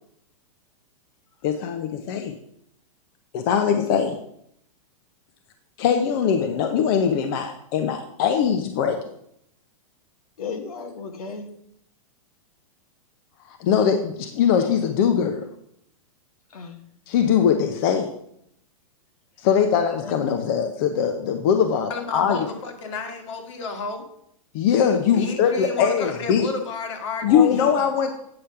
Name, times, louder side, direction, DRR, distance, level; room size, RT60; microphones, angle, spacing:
voice 1, 1.4-2.3 3.3-4.2 5.8-9.0 13.6-15.4 17.1-18.1 19.4-22.5 24.5-26.5 27.2-28.1, left 7 dB, 40° left, 6 dB, 0.7 m, -21 dB
voice 2, 10.4-11.5 16.5-16.8 20.0-20.3 27.3-27.9, left 7 dB, 85° left, 5 dB, 1.6 m, -32 dB
voice 3, 21.9-24.0 25.1-27.7, left 4 dB, 55° left, 5 dB, 1.8 m, -32 dB
8.7 x 5.1 x 5.7 m, 0.73 s
supercardioid pair, 155°, 18 cm